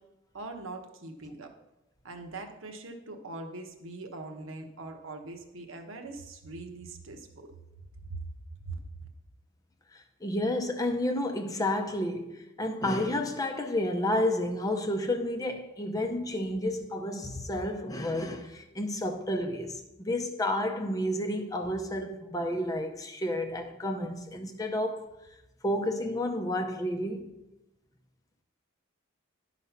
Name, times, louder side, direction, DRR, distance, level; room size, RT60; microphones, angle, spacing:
voice 1, 0.3-1.5 2.0-7.5 8.0-8.2 8.7-8.8, right 3 dB, 70° right, 1.1 m, -42 dB
voice 2, 9.9-25.1 25.6-27.3, left 1 dB, 15° left, 0.6 m, -31 dB
11.0 x 4.1 x 5.7 m
head